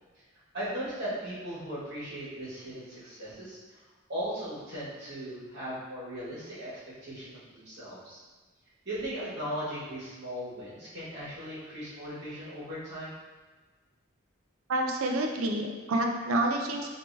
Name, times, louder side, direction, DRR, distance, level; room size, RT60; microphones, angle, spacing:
voice 1, 0.5-3.8 4.1-8.2 8.8-13.1, equal, 50° right, -10 dB, 1.5 m, -38 dB
voice 2, 14.7-16.9, right 1 dB, 85° right, 2 dB, 0.5 m, -28 dB
3.6 x 2.8 x 2.6 m, 1.3 s
head